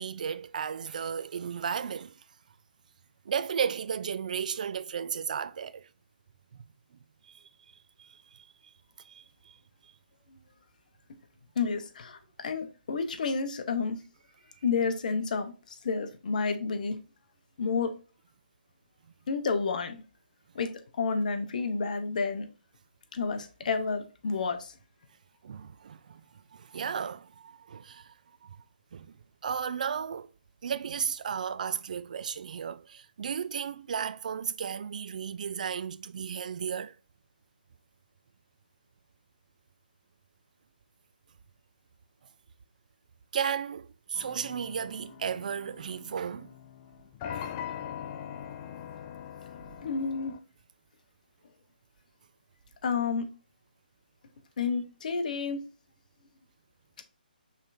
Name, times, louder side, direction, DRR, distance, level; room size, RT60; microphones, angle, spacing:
voice 1, 0.0-2.2 3.3-5.9 7.2-7.4 8.0-8.5 9.0-9.6 9.8-9.9 25.4-26.3 26.5-28.1 28.4-28.6 28.9-29.1 29.4-30.3 30.6-37.0 43.3-46.5 47.3-47.5, right 7 dB, 55° right, 0.3 m, -34 dB
voice 2, 11.6-14.0 14.6-17.0 17.6-17.9 19.3-20.0 20.5-20.7 21.0-22.5 23.1-24.7 49.8-50.3 52.8-53.3 54.6-55.6, left 5 dB, 55° left, 0.9 m, -30 dB
sound 1, 44.2-50.4, left 9 dB, 25° left, 0.4 m, -42 dB
5.4 x 3.5 x 2.6 m
hypercardioid pair, 150°, 5 cm